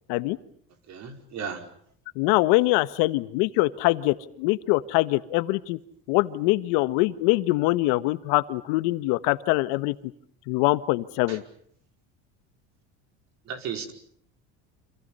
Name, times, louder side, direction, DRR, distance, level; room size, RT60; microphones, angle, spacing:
voice 1, 0.9-1.7 11.3-11.4 13.5-13.9, right 6 dB, 50° right, 6 dB, 5.1 m, -35 dB
voice 2, 2.1-5.8 6.1-9.9 10.5-11.4, left 20 dB, 75° left, 13 dB, 1.5 m, -23 dB
30.0 x 26.5 x 5.7 m, 0.63 s
supercardioid pair, 120°, 36 cm